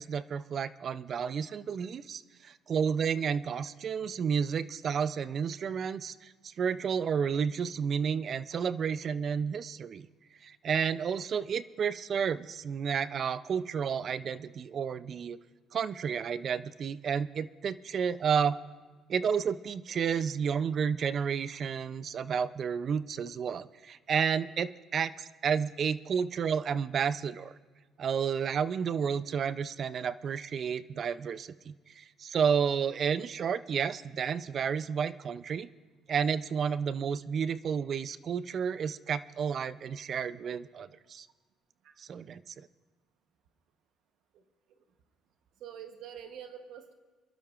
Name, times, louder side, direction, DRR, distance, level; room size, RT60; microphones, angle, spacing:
voice 1, 0.0-10.1 10.4-15.4 15.7-18.6 19.1-27.5 28.0-35.7 36.1-41.3 42.0-42.7, right 7 dB, 45° right, 16 dB, 0.4 m, -31 dB
voice 2, 45.6-46.9, right 9 dB, 70° right, 7 dB, 0.9 m, -46 dB
28.0 x 12.0 x 2.4 m, 1.3 s
cardioid pair, 120°, 0 cm